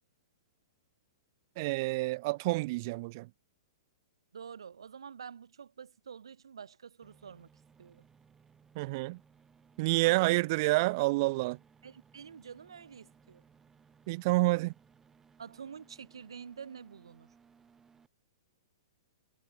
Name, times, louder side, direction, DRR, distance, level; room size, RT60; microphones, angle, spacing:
voice 1, 1.6-3.3 8.8-9.2 9.8-11.6 14.1-14.7, right 23 dB, 45° right, 0.8 m, -28 dB
voice 2, 4.3-7.5 7.8-8.0 10.0-10.5 11.8-13.4 15.4-17.3, right 7 dB, 90° right, 3.1 m, -48 dB
sound 1, 7.0-18.1, right 6 dB, 15° right, 3.4 m, -63 dB
hypercardioid pair, 140°, 3 cm